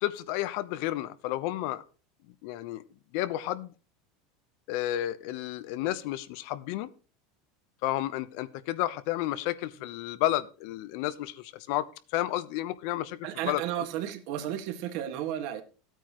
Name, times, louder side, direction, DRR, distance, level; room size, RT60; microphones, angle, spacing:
voice 1, 0.0-1.8 2.4-2.8 3.1-3.7 4.7-6.9 7.8-13.2 13.5-13.8, left 14 dB, 60° left, 15 dB, 0.8 m, -31 dB
voice 2, 13.2-15.6, right 11 dB, 60° right, 7 dB, 1.8 m, -33 dB
14.5 x 9.1 x 3.1 m, 0.35 s
supercardioid pair, 155°, 0 cm